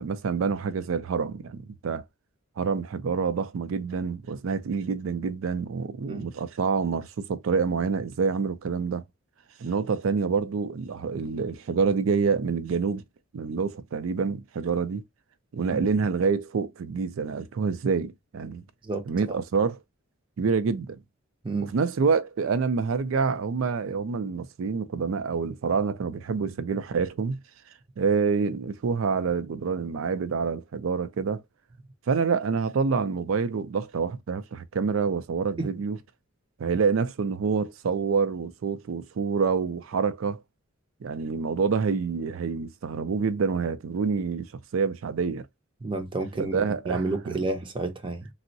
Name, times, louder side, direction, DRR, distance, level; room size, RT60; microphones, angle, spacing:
voice 1, 0.0-2.0 2.6-9.0 9.6-13.0 13.3-15.0 15.5-18.6 19.1-19.8 20.4-21.0 21.7-27.4 28.0-31.4 32.1-36.0 36.6-40.4 41.0-45.5 46.4-47.3, right 5 dB, 85° right, 0.4 m, -27 dB
voice 2, 18.8-19.4 21.4-21.7 35.6-35.7 45.8-48.3, right 3 dB, 25° right, 0.5 m, -31 dB
3.5 x 2.1 x 2.6 m
head